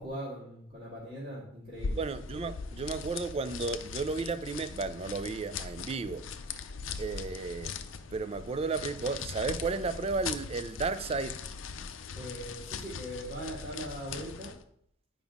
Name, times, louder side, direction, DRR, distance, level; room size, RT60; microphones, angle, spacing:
voice 1, 0.0-2.0 12.2-14.6, equal, 50° right, 1.9 m, -40 dB
sound 1, 1.7-14.6, left 5 dB, 70° left, 0.5 m, -40 dB
voice 2, 2.0-6.2 7.0-7.7 8.1-11.4, right 4 dB, 30° right, 0.4 m, -33 dB
9.0 x 5.1 x 3.5 m
head